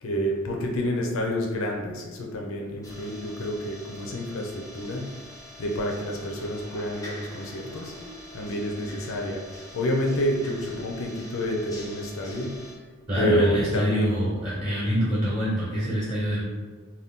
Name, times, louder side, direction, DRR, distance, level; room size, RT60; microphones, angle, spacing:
voice 1, 0.0-5.1 5.6-7.9 8.3-12.5 13.1-14.1 14.7-15.1, equal, 70° left, 0 dB, 0.5 m, -29 dB
sound 1, 2.8-12.7, left 1 dB, 15° left, 0.4 m, -45 dB
voice 2, 13.1-16.4, equal, 20° right, -7 dB, 0.8 m, -25 dB
2.6 x 2.2 x 3.5 m, 1.5 s
head